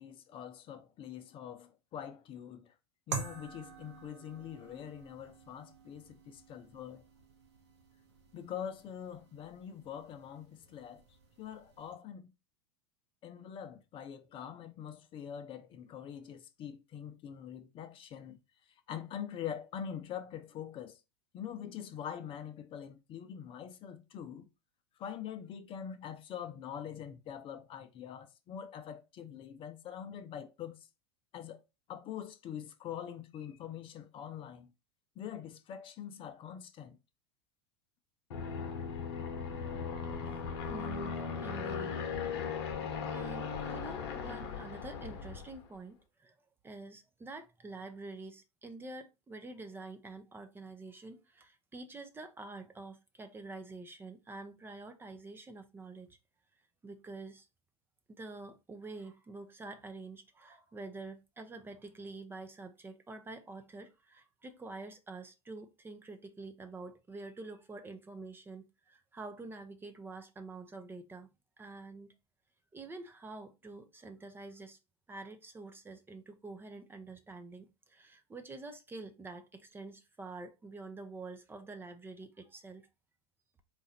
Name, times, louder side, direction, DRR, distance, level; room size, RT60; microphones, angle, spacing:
voice 1, 0.0-2.7 3.1-7.0 8.3-11.0 11.4-12.3 13.2-18.4 18.9-21.0 21.3-24.5 25.0-30.8 31.3-31.6 31.9-34.7 35.2-37.0, left 9 dB, 40° left, 0.7 m, -44 dB
sound 1, 3.1-11.9, right 4 dB, 80° right, 1.0 m, -47 dB
Aircraft, 38.3-45.6, left 6 dB, 65° left, 1.0 m, -38 dB
voice 2, 40.7-42.1 43.1-46.4 46.6-56.2 56.8-57.5 58.1-71.3 71.6-72.1 72.7-74.8 75.1-82.9, right 3 dB, 15° right, 0.6 m, -47 dB
4.0 x 2.5 x 4.1 m
hypercardioid pair, 90°, 14 cm